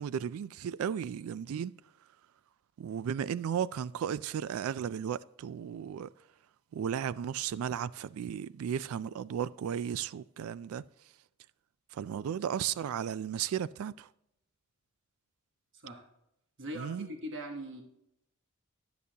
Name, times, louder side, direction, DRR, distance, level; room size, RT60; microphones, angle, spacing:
voice 1, 0.0-1.7 2.8-6.1 6.7-10.8 11.9-14.1 16.7-17.1, right 8 dB, 75° right, 0.3 m, -35 dB
voice 2, 15.7-16.1 16.6-17.8, equal, 60° right, 1.2 m, -41 dB
12.5 x 6.8 x 2.8 m
head